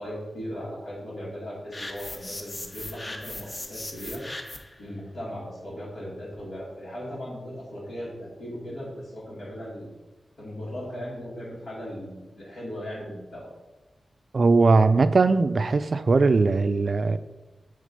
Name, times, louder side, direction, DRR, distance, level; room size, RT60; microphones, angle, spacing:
voice 1, 0.0-4.2 4.8-9.9 10.4-13.5, equal, 80° left, 2.3 m, -37 dB
sound 1, 1.7-4.8, left 1 dB, 25° left, 0.8 m, -38 dB
voice 2, 14.3-17.2, right 3 dB, 55° right, 0.3 m, -20 dB
6.5 x 3.5 x 5.3 m
wide cardioid pair, 85°, 0 cm